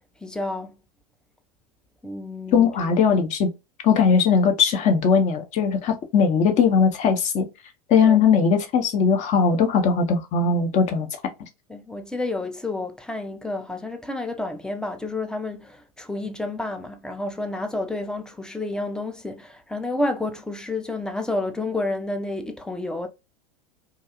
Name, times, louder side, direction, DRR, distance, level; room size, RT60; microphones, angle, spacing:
voice 1, 0.2-0.7 2.0-2.9 8.0-8.2 11.7-23.1, left 2 dB, 5° left, 0.3 m, -30 dB
voice 2, 2.5-3.5 3.8-7.5 7.9-11.1, left 6 dB, 40° left, 0.7 m, -19 dB
2.4 x 2.3 x 2.8 m
figure-of-eight pair, 85°, 20 cm